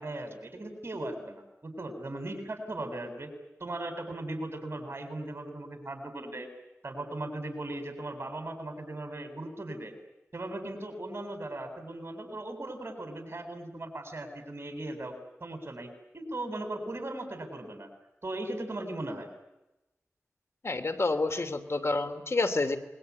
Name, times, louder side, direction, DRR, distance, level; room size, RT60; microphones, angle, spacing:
voice 1, 0.0-3.3 3.6-6.5 6.8-9.9 10.3-17.9 18.2-19.3, right 1 dB, 50° right, 5 dB, 7.7 m, -38 dB
voice 2, 20.6-22.8, left 3 dB, 60° left, 9 dB, 3.0 m, -28 dB
27.0 x 22.0 x 9.8 m, 0.95 s
wide cardioid pair, 60°, 5 cm